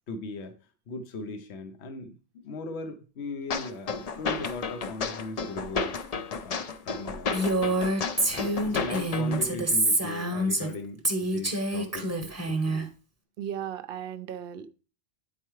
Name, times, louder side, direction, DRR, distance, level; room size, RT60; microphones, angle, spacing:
voice 1, 0.1-0.5 0.9-2.2 2.4-6.0 6.2-7.9 8.3-12.9, left 2 dB, 70° left, 7 dB, 1.0 m, -39 dB
sound 1, 3.5-9.5, left 5 dB, 50° left, 0.5 m, -32 dB
Female speech woman speaking, 7.3-10.7 11.0-12.8, right 1 dB, 15° right, 0.8 m, -27 dB
voice 2, 13.4-14.7, right 9 dB, 60° right, 13 dB, 0.7 m, -36 dB
9.3 x 4.5 x 3.1 m, 0.35 s
omnidirectional pair, 1.2 m